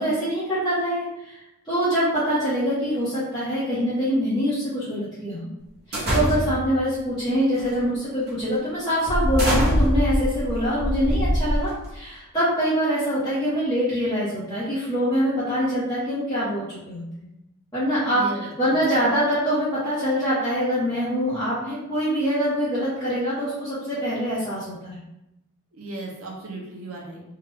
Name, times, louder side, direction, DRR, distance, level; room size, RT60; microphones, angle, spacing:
voice 1, 0.0-1.4 1.6-5.5 5.9-17.3 17.7-18.2 18.6-24.9, equal, 20° left, -14 dB, 1.1 m, -24 dB
sound 1, 5.9-6.7 7.5-7.8 8.3-8.4 9.1-12.0, equal, 50° right, 1.1 m, -23 dB
voice 2, 18.1-19.1 25.7-27.2, right 2 dB, 85° right, -2 dB, 0.9 m, -36 dB
3.4 x 2.4 x 3.4 m, 0.89 s
head